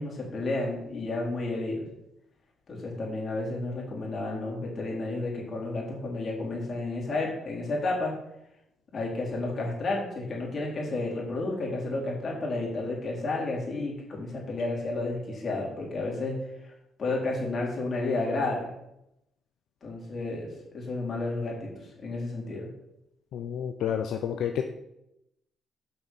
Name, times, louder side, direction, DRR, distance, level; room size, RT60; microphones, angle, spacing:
voice 1, 0.0-1.9 2.7-8.1 8.9-16.7 17.0-18.7 19.8-22.7, left 2 dB, 45° left, -3 dB, 4.1 m, -31 dB
voice 2, 23.3-24.7, left 8 dB, 75° left, 5 dB, 0.7 m, -30 dB
6.8 x 6.0 x 7.2 m, 0.84 s
cardioid pair, 90°, 0 cm